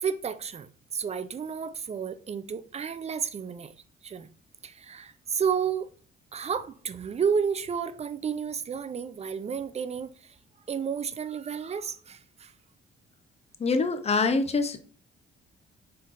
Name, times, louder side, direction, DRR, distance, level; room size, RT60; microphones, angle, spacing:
voice 1, 0.0-3.7 4.0-4.3 4.6-5.9 6.3-10.4 10.7-12.5, right 6 dB, 35° right, 0.4 m, -31 dB
voice 2, 13.6-14.8, left 4 dB, 30° left, 0.7 m, -25 dB
4.5 x 3.7 x 2.5 m
cardioid pair, 90°, 20 cm